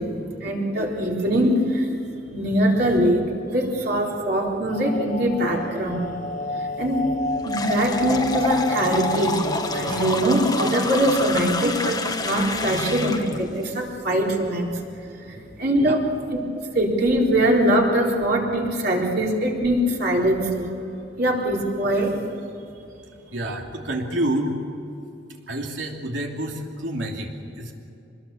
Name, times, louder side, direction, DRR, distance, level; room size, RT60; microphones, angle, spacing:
voice 1, 0.0-2.0 2.3-6.1 6.5-7.1 7.4-14.8 15.0-16.0 16.7-20.7 21.2-22.3, right 1 dB, 55° right, -2 dB, 4.0 m, -22 dB
sound 1, 4.7-11.6 11.9-12.0 12.6-13.4, left 2 dB, 40° left, 1.2 m, -31 dB
sound 2, 7.4-13.4, left 3 dB, 20° left, 1.3 m, -28 dB
voice 2, 23.1-24.6 25.3-27.7, right 1 dB, 75° right, 1 dB, 3.0 m, -29 dB
25.5 x 21.0 x 7.1 m, 2.7 s
head